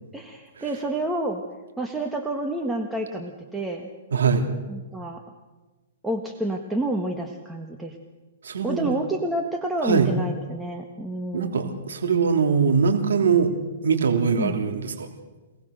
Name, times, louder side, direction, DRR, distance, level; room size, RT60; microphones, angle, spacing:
voice 1, 0.1-1.4 1.8-3.9 4.7-5.2 6.0-8.0 8.6-11.8 14.4-14.6, right 1 dB, 5° right, 2 dB, 1.6 m, -29 dB
voice 2, 4.1-4.5 8.4-8.9 9.8-10.1 11.3-13.5 13.8-15.1, right 6 dB, 85° right, 4 dB, 3.2 m, -22 dB
26.5 x 19.0 x 6.7 m, 1.2 s
hypercardioid pair, 150°, 0 cm